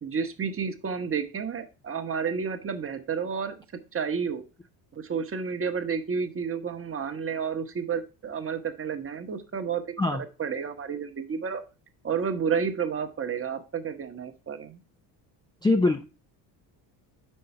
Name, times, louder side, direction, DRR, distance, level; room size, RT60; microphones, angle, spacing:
voice 1, 0.0-3.6 3.9-4.4 4.9-9.8 10.1-11.6 12.0-14.8, right 6 dB, 30° right, 6 dB, 0.9 m, -31 dB
voice 2, 15.6-16.0, left 2 dB, 10° left, 5 dB, 0.4 m, -22 dB
5.5 x 3.8 x 5.5 m, 0.32 s
cardioid pair, 95°, 44 cm